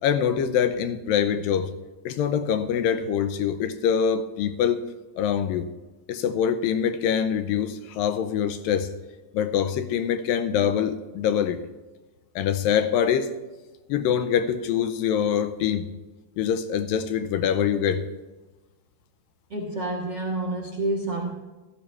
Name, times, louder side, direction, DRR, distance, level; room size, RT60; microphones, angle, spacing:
voice 1, 0.0-1.7 2.1-4.8 5.2-5.7 6.1-8.9 9.3-11.7 12.4-13.3 13.9-15.9 16.4-18.0, left 8 dB, 80° left, 2.4 m, -24 dB
voice 2, 19.5-21.3, right 2 dB, 50° right, 1.4 m, -28 dB
16.0 x 13.5 x 3.3 m
omnidirectional pair, 4.2 m